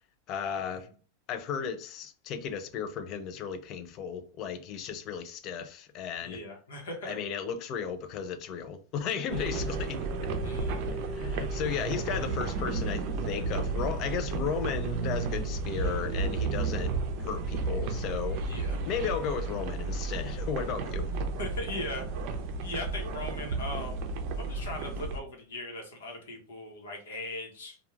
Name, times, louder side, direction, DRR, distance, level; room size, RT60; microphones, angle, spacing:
voice 1, 0.3-0.9 1.3-6.4 7.1-10.0 10.9-16.9 17.2-18.4 18.9-21.0, left 7 dB, 40° left, 0.4 m, -34 dB
voice 2, 6.2-7.2 10.4-10.9 18.4-18.8 21.4-22.1 22.6-24.0 24.4-27.8, left 2 dB, 85° left, 0.9 m, -39 dB
sound 1, 9.3-25.2, right 3 dB, 50° right, 0.5 m, -32 dB
2.3 x 2.3 x 3.1 m
supercardioid pair, 135°, 0 cm